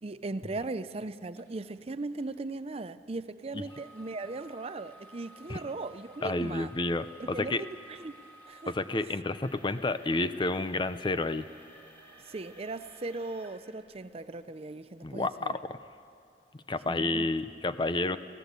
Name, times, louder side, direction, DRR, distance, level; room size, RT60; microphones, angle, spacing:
voice 1, 0.0-6.7 7.2-8.7 12.2-15.5 16.9-17.3, right 3 dB, 35° right, 13 dB, 0.5 m, -38 dB
sound 1, 1.4-1.5 2.2-2.4 3.6-14.4 15.0-15.1 15.7-15.8, right 1 dB, 10° left, 3.5 m, -54 dB
voice 2, 6.2-7.6 8.7-11.5 15.0-15.8 16.7-18.2, left 2 dB, 25° left, 12 dB, 0.6 m, -30 dB
25.5 x 17.0 x 8.2 m, 2.5 s
head